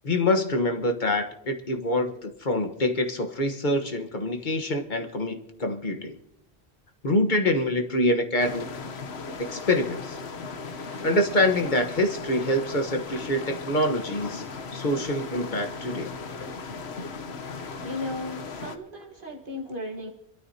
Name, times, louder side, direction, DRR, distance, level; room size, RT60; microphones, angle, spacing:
voice 1, 0.0-6.2 7.0-8.7 9.4-10.2 10.8-14.5 14.7-16.1, left 1 dB, 50° left, 5 dB, 1.3 m, -25 dB
sound 1, 8.4-18.8, left 4 dB, 80° left, 1.2 m, -37 dB
voice 2, 17.8-20.1, left 2 dB, 55° right, 0 dB, 1.6 m, -35 dB
26.5 x 12.5 x 2.8 m, 0.82 s
omnidirectional pair, 1.1 m